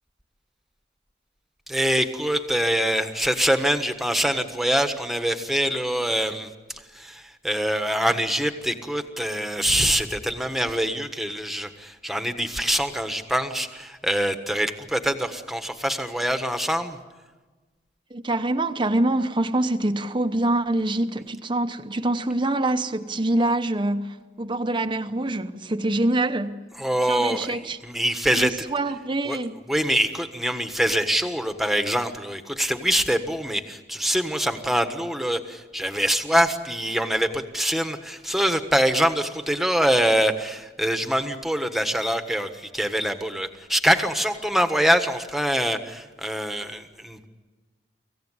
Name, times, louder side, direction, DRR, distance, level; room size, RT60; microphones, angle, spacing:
voice 1, 1.7-6.5 6.9-17.0 26.8-28.5 29.3-29.4 29.7-47.3, equal, ahead, 1.4 m, -24 dB
voice 2, 18.1-26.6 27.1-27.8 28.3-29.6, right 2 dB, 30° right, 0.9 m, -25 dB
25.0 x 16.0 x 9.9 m
head